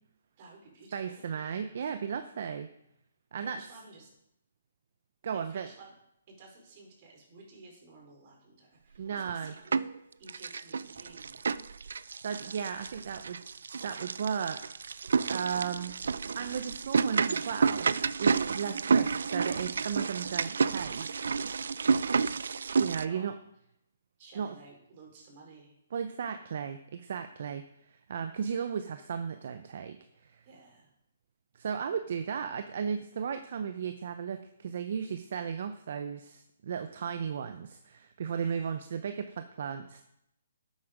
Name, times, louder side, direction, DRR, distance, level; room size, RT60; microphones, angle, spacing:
voice 1, 0.4-1.9 3.4-4.1 5.2-5.9 6.3-9.8 10.2-11.4 21.9-22.3 22.9-23.3 24.2-25.8 30.4-30.9 37.4-37.5 38.4-38.8, right 3 dB, 40° right, 0 dB, 4.3 m, -54 dB
voice 2, 0.9-2.7 3.3-3.6 5.2-5.7 9.0-9.5 12.2-14.6 15.3-15.9 16.3-17.9 18.2-21.3 22.7-23.3 24.4-24.5 25.9-30.4 31.5-40.0, right 7 dB, 55° right, 8 dB, 0.8 m, -35 dB
sound 1, 9.1-10.0 10.3-23.0, right 5 dB, 75° right, 0.5 m, -30 dB
12.0 x 8.5 x 5.1 m, 0.80 s
hypercardioid pair, 150°, 0 cm